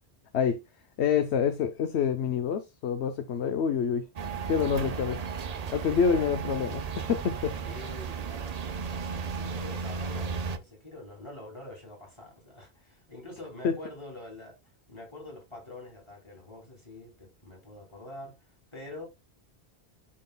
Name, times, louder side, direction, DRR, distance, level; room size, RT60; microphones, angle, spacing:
voice 1, 1.0-4.1 4.5-5.2 5.7-7.5 13.6-13.7, left 7 dB, 85° left, 1.0 m, -27 dB
sound 1, 4.2-10.6, right 5 dB, 45° right, 0.6 m, -34 dB
voice 2, 5.6-6.1 7.6-19.1, left 2 dB, 25° left, 2.9 m, -46 dB
11.5 x 3.8 x 2.2 m
omnidirectional pair, 1.1 m